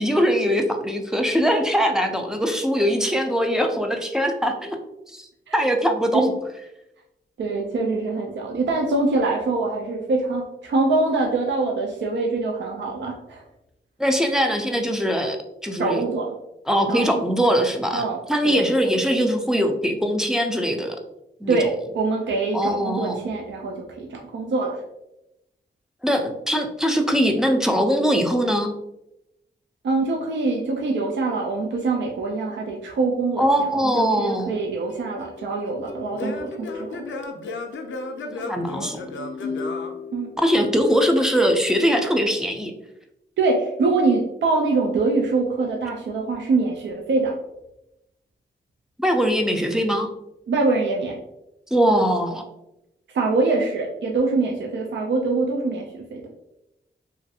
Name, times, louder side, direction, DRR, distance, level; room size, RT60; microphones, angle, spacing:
voice 1, 0.0-4.8 5.1-6.3 14.0-15.4 15.6-16.0 16.7-18.0 18.3-21.0 21.4-21.7 22.5-23.2 26.0-28.7 33.4-34.6 38.4-39.0 40.4-42.7 49.0-50.1 51.7-52.4, equal, 5° right, 3 dB, 0.4 m, -21 dB
voice 2, 7.4-13.4 15.8-16.3 16.9-17.0 17.9-18.2 18.4-18.7 21.5-24.8 29.8-37.0 40.1-40.3 43.4-47.3 50.5-51.2 53.1-56.3, right 3 dB, 70° right, 0 dB, 0.4 m, -24 dB
Singing / Plucked string instrument, 34.9-40.8, left 3 dB, 90° left, 0.4 m, -33 dB
3.0 x 2.5 x 2.6 m, 0.87 s
wide cardioid pair, 110°, 19 cm